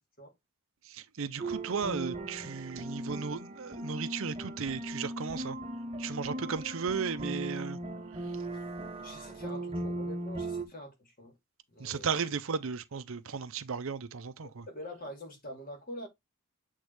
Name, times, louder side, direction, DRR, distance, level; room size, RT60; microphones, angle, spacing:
voice 1, 0.8-5.6 6.0-7.8 8.1-8.4 11.8-14.6, right 6 dB, 60° right, 0.6 m, -35 dB
sound 1, 1.4-10.6, right 1 dB, 25° right, 0.8 m, -38 dB
voice 2, 9.0-11.4 11.7-12.2 14.4-16.1, left 1 dB, 40° left, 2.6 m, -45 dB
8.0 x 3.7 x 3.3 m
head